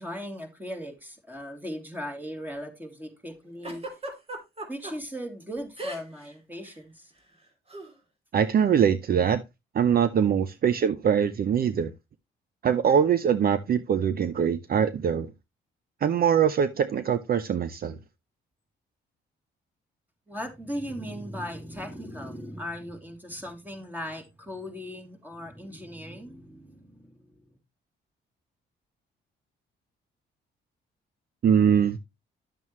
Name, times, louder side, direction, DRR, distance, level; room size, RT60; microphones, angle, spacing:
voice 1, 0.0-3.8 4.7-7.1 20.3-27.4, equal, 10° right, 3.0 m, -38 dB
Giggle, 3.6-4.9 5.8-6.3 6.5-6.8 7.7-7.9, right 1 dB, 30° right, 3.0 m, -37 dB
voice 2, 8.3-9.4 9.7-11.9 12.6-15.3 16.0-18.0 31.4-32.0, right 8 dB, 50° right, 0.7 m, -23 dB
11.0 x 7.1 x 3.1 m
cardioid pair, 90°, 20 cm